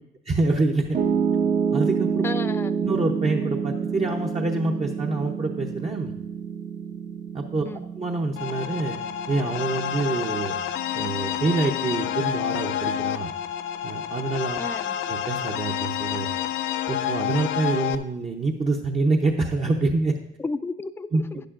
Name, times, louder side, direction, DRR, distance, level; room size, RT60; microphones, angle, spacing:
voice 1, 0.2-1.0 1.7-2.1 2.8-6.1 7.3-7.6 8.0-9.0 9.3-10.6 10.9-13.3 13.8-14.6 15.1-16.3 16.9-20.2 21.1-21.2, right 3 dB, 35° right, 1 dB, 0.8 m, -26 dB
Piano, 0.9-13.1, right 6 dB, 60° right, 1.2 m, -29 dB
voice 2, 2.2-2.8 7.6-7.9 14.6-15.0 20.4-21.4, left 3 dB, 10° left, 11 dB, 0.4 m, -33 dB
sound 1, 8.4-18.0, left 10 dB, 85° left, 0.5 m, -29 dB
11.5 x 9.9 x 2.5 m, 0.83 s
cardioid pair, 90°, 20 cm